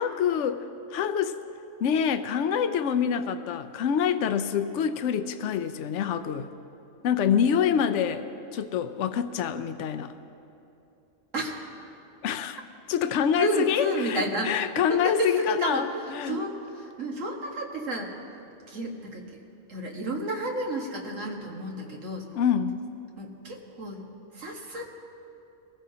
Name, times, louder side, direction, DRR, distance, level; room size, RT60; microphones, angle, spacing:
voice 1, 0.0-1.4 1.8-6.5 7.0-8.3 8.5-10.1 12.2-12.6 12.9-16.4 22.3-22.8, left 8 dB, 70° left, 10 dB, 0.9 m, -26 dB
voice 2, 11.3-11.6 13.4-14.6 14.9-18.4 18.7-19.4 19.7-22.3 23.2-24.0 24.3-24.9, right 1 dB, 80° right, 0 dB, 2.0 m, -31 dB
23.0 x 15.0 x 2.8 m, 2.8 s
omnidirectional pair, 1.3 m